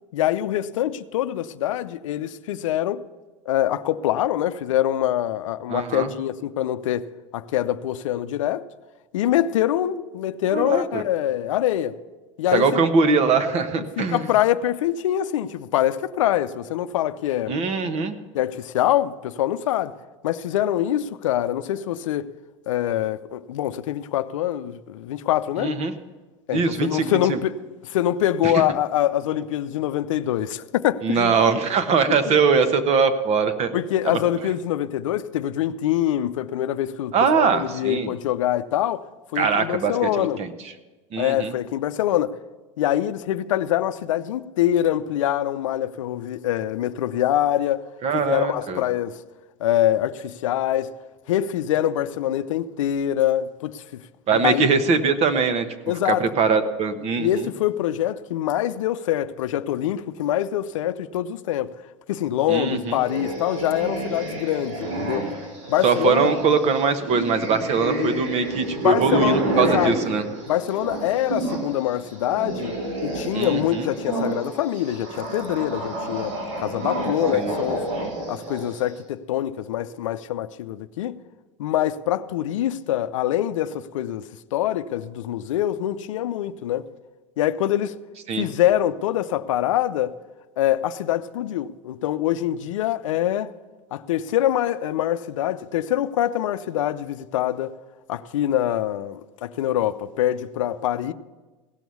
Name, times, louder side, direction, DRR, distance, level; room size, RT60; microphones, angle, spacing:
voice 1, 0.1-3.0 3.5-7.1 7.3-8.7 9.1-11.9 12.4-12.7 14.0-17.6 18.3-19.9 20.2-22.3 22.7-25.8 26.5-27.6 27.8-31.4 32.1-32.4 33.7-39.0 39.3-40.4 41.2-42.4 42.8-47.8 48.1-49.2 49.6-50.9 51.3-54.0 54.3-54.7 55.9-56.2 57.2-61.7 62.1-65.3 65.7-66.3 68.1-68.2 68.8-69.9 70.5-72.8 73.0-77.9 78.3-81.2 81.6-86.9 87.4-88.0 88.3-90.2 90.6-93.5 93.9-97.7 98.1-101.1, left 12 dB, 80° left, 0.5 m, -24 dB
voice 2, 5.7-6.1 10.5-11.0 12.5-14.2 17.5-18.1 25.6-25.9 26.5-27.4 28.4-28.5 31.0-33.7 34.1-34.2 37.1-38.1 39.4-40.5 41.1-41.5 48.0-48.8 54.3-55.7 56.1-57.5 62.5-63.0 65.8-70.2 73.3-73.9 77.3-77.5 88.3-88.5, right 5 dB, 40° right, 1.1 m, -22 dB
sound 1, 62.9-71.7 72.0-78.8, right 2 dB, 85° right, 4.6 m, -29 dB
16.5 x 6.1 x 7.0 m
hypercardioid pair, 105°, 16 cm